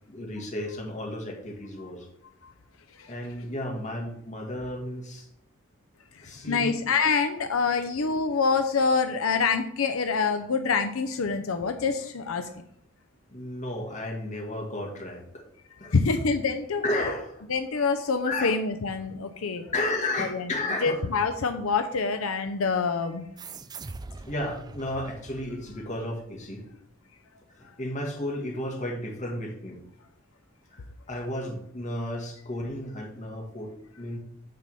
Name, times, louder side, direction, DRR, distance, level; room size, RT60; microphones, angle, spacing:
voice 1, 0.1-2.1 3.1-5.3 6.2-6.8 13.3-15.4 15.8-16.0 16.8-17.4 18.3-18.5 19.7-21.0 24.2-26.7 27.6-29.8 30.7-30.8 31.1-34.2, left 1 dB, 35° left, 1 dB, 2.2 m, -33 dB
voice 2, 6.1-12.5 15.8-16.8 17.5-19.7 20.2-20.5 20.8-23.3, left 4 dB, 85° left, 7 dB, 0.7 m, -26 dB
sound 1, 23.4-26.4, right 3 dB, 20° right, 0.4 m, -43 dB
9.4 x 4.2 x 7.0 m, 0.74 s
head